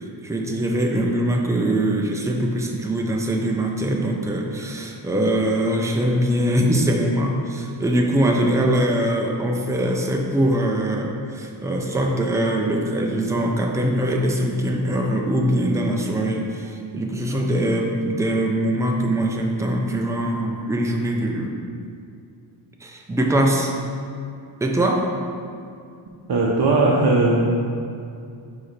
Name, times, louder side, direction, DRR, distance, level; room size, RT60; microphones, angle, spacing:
voice 1, 0.2-21.6 22.8-23.7 24.6-25.1, right 1 dB, 5° right, 1 dB, 0.5 m, -22 dB
voice 2, 26.3-27.5, right 2 dB, 50° right, -5 dB, 0.8 m, -18 dB
5.2 x 4.8 x 4.2 m, 2.4 s
wide cardioid pair, 125°, 49 cm